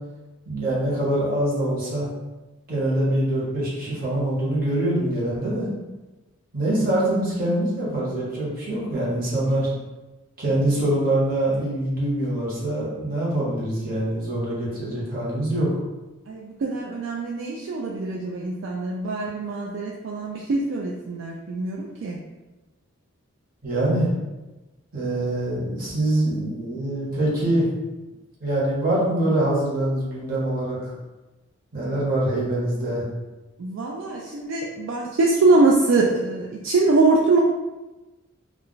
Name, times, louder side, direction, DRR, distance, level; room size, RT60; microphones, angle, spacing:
voice 1, 0.5-2.1 2.7-5.7 6.5-9.7 10.4-15.7 23.6-24.1 24.9-27.7 28.4-30.9 31.7-33.0, right 1 dB, 45° right, -7 dB, 1.0 m, -24 dB
voice 2, 16.3-22.2 33.6-37.4, right 3 dB, 65° right, -2 dB, 0.3 m, -23 dB
2.4 x 2.1 x 3.8 m, 1.1 s
head